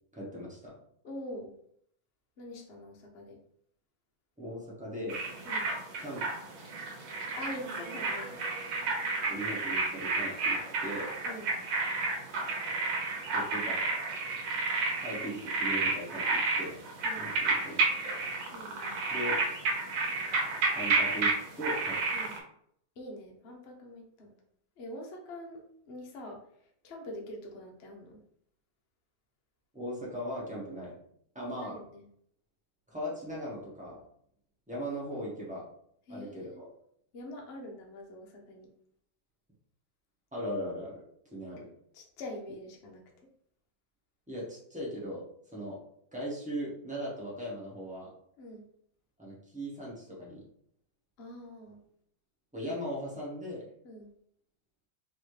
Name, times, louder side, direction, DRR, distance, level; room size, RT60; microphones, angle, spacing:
voice 1, 0.1-0.7 4.4-5.2 6.0-6.2 9.3-11.1 13.3-13.9 15.0-16.7 17.2-18.1 19.1-19.5 20.7-22.0 29.7-31.0 31.3-31.8 32.9-34.0 34.7-35.6 36.1-36.7 40.3-41.0 41.3-41.7 44.3-45.8 46.1-48.1 49.2-50.4 52.5-53.6, equal, 10° right, -5 dB, 0.5 m, -38 dB
voice 2, 1.0-1.5 2.4-3.4 5.4-5.7 7.4-8.4 11.2-11.5 17.0-17.3 18.5-19.0 22.1-22.4 23.0-24.3 24.8-26.4 26.8-28.2 31.6-32.0 36.1-36.6 37.1-38.7 41.9-43.0 48.4-48.7 51.2-51.8 53.8-54.1, left 1 dB, 70° left, 0 dB, 0.6 m, -44 dB
sound 1, 5.1-22.4, right 3 dB, 80° right, 1.7 m, -31 dB
4.2 x 2.8 x 3.2 m, 0.68 s
omnidirectional pair, 2.2 m